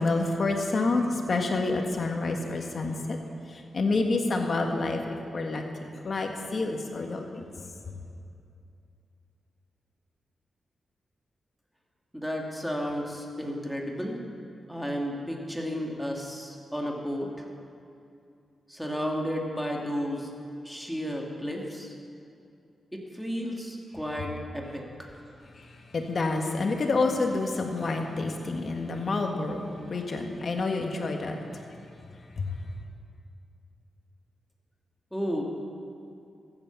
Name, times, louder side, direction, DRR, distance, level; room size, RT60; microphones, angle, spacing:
voice 1, 0.0-3.2 3.7-5.0 5.3-5.6 6.0-7.2 25.9-31.4, left 3 dB, 55° left, 3 dB, 1.7 m, -28 dB
voice 2, 12.1-14.2 14.7-17.4 18.7-20.3 20.6-21.9 22.9-25.2 35.1-35.4, equal, ahead, 0 dB, 2.4 m, -33 dB
14.5 x 8.7 x 7.1 m, 2.6 s
cardioid pair, 65°, 0 cm